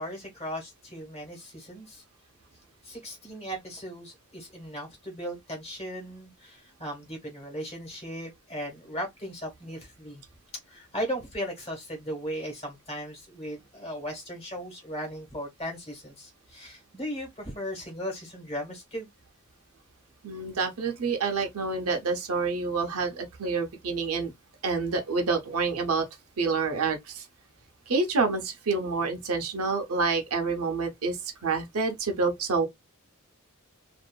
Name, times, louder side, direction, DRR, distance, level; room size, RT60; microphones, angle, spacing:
voice 1, 0.0-2.0 2.8-10.2 10.7-19.1, equal, 30° left, 1.2 m, -37 dB
voice 2, 20.2-24.3 24.6-26.1 26.4-27.3 27.9-32.7, right 4 dB, 75° right, 0.7 m, -28 dB
2.6 x 2.4 x 2.2 m
head